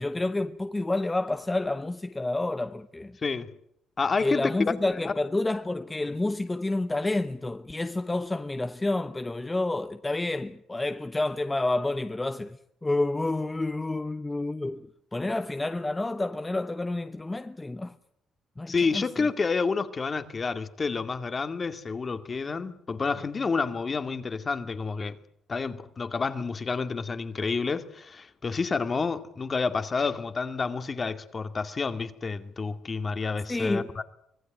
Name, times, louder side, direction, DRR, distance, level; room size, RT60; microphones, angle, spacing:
voice 1, 0.0-3.2 4.2-14.9 15.1-17.9 18.6-19.3 33.5-33.9, left 2 dB, 15° left, 1.0 m, -29 dB
voice 2, 3.2-3.5 4.0-5.1 18.7-25.2 25.5-34.0, left 4 dB, 35° left, 2.2 m, -29 dB
25.0 x 18.0 x 9.4 m
cardioid pair, 90°, 0 cm